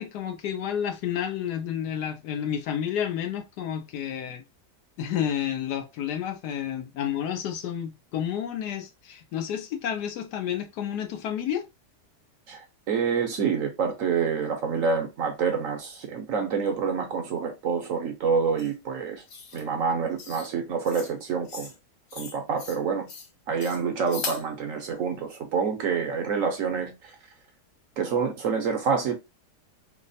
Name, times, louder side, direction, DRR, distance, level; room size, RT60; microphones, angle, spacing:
voice 1, 0.0-4.4 5.0-11.7, left 9 dB, 75° left, 1.2 m, -30 dB
voice 2, 12.5-19.2 19.5-21.7 22.2-23.1 23.5-27.1 28.0-29.2, right 6 dB, 60° right, 0.9 m, -27 dB
sound 1, 18.6-18.7 19.3-19.6 20.2-20.5 20.8-21.1 21.4-21.8 22.1-22.8 23.1-23.3 23.6-24.4, left 5 dB, 55° left, 0.8 m, -38 dB
3.3 x 2.0 x 4.0 m
omnidirectional pair, 1.8 m